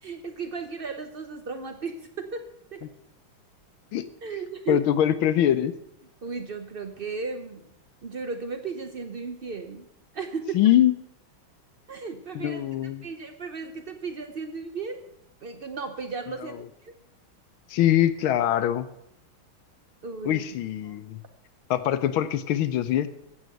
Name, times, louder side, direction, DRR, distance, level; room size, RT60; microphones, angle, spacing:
voice 1, 0.0-2.8 4.2-4.8 6.2-7.7 8.0-9.9 10.1-10.6 11.9-15.0 15.4-16.6 16.8-16.9 20.0-20.4 20.9-21.0, right 4 dB, 80° right, 7 dB, 0.5 m, -35 dB
voice 2, 4.7-5.7 10.5-10.9 12.3-13.0 17.7-18.9 20.2-21.2 21.7-23.1, left 11 dB, 80° left, 12 dB, 1.5 m, -23 dB
16.0 x 7.3 x 7.7 m, 0.77 s
omnidirectional pair, 2.2 m